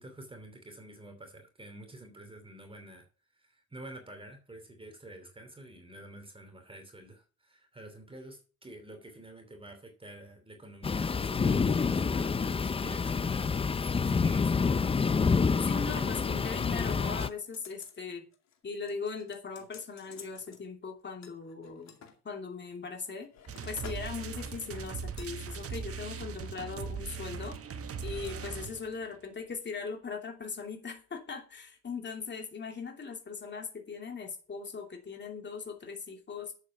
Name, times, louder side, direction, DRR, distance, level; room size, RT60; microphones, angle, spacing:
voice 1, 0.0-3.1 3.3-14.8 15.7-16.2, right 1 dB, 20° right, 5 dB, 2.7 m, -49 dB
sound 1, 10.8-17.3, left 5 dB, 20° left, 0.4 m, -28 dB
voice 2, 15.6-18.2 18.6-22.0 22.2-23.3 23.6-27.5 28.0-36.5, left 5 dB, 35° left, 3 dB, 2.8 m, -39 dB
sound 2, 17.2-18.0 18.3-18.6 18.9-20.6 21.2-22.2 22.8-24.1 24.4-24.7 25.2-25.4 25.9-26.2 26.5-26.6, left 7 dB, 65° left, 2.4 m, -52 dB
sound 3, 23.5-29.0, right 5 dB, 50° right, 1.3 m, -39 dB
9.7 x 7.5 x 5.9 m, 0.37 s
cardioid pair, 90°, 30 cm